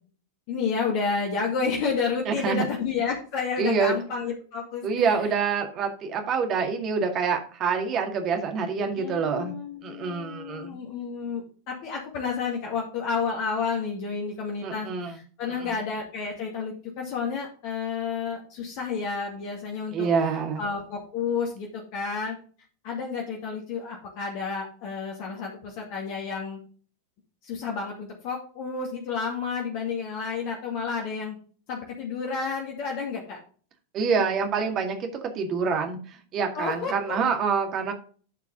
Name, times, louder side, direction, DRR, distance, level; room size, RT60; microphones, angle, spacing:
voice 1, 0.5-5.1 9.0-20.1 20.6-22.4 22.8-26.6 27.4-31.4 31.7-33.4 36.5-37.2, left 5 dB, 45° left, -1 dB, 2.2 m, -31 dB
voice 2, 2.3-2.6 3.6-3.9 4.8-9.5 9.8-10.8 14.6-15.1 15.6-15.7 19.9-20.6 33.9-35.1 35.3-37.9, right 5 dB, 35° right, 4 dB, 2.1 m, -26 dB
12.0 x 4.7 x 3.8 m, 0.41 s
figure-of-eight pair, 90°, 0 cm